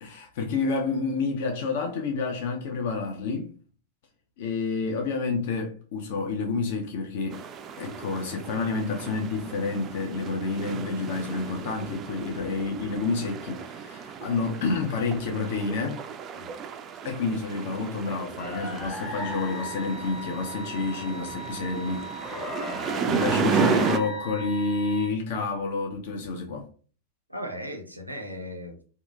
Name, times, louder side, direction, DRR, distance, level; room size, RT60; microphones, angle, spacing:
voice 1, 0.0-3.5 4.4-7.4 7.8-16.0 17.0-22.1 23.1-26.7, left 4 dB, 55° left, 0.5 m, -29 dB
sound 1, 7.3-24.0, right 6 dB, 30° right, 0.3 m, -33 dB
sound 2, 18.4-25.1, equal, 20° left, 0.7 m, -37 dB
voice 2, 22.3-23.2 23.6-23.7 27.3-28.8, equal, 85° right, 0.5 m, -39 dB
2.7 x 2.4 x 2.3 m
figure-of-eight pair, 90°, 0 cm